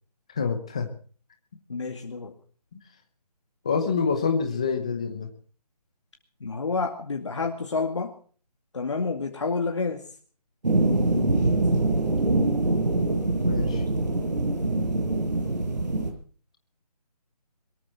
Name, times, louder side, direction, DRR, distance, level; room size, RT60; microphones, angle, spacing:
voice 1, 0.3-0.9 3.6-5.3 11.1-11.4 13.4-13.8, left 5 dB, 10° left, 5 dB, 0.8 m, -27 dB
voice 2, 1.7-2.3 6.4-8.1 8.7-10.0, left 4 dB, 45° left, 3 dB, 2.3 m, -29 dB
sound 1, 10.6-16.1, right 2 dB, 85° right, 6.5 m, -24 dB
22.5 x 14.0 x 4.3 m, 0.43 s
figure-of-eight pair, 175°, 21 cm